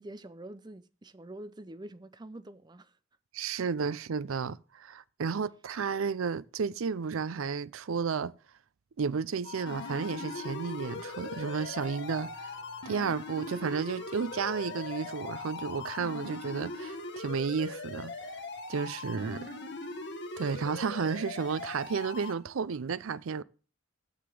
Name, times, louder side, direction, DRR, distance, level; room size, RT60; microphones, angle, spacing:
voice 1, 0.0-2.9 19.2-19.7, right 1 dB, 20° right, 0.5 m, -46 dB
voice 2, 3.3-8.3 9.0-12.5 12.9-18.1 18.7-19.5 20.4-23.4, right 5 dB, 80° right, 0.5 m, -32 dB
sound 1, 9.4-17.4, left 10 dB, 30° left, 1.2 m, -47 dB
sound 2, 9.7-22.3, left 2 dB, 55° left, 1.5 m, -41 dB
7.0 x 6.8 x 7.6 m
head